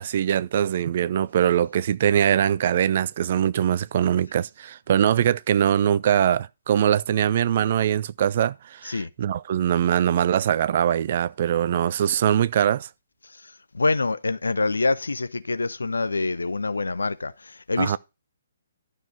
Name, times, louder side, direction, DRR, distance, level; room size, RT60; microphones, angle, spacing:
voice 1, 0.0-12.9 17.8-18.0, right 9 dB, 40° right, 0.5 m, -22 dB
voice 2, 13.4-18.0, left 3 dB, 70° left, 0.8 m, -26 dB
12.0 x 6.5 x 5.0 m
figure-of-eight pair, 130°, 0 cm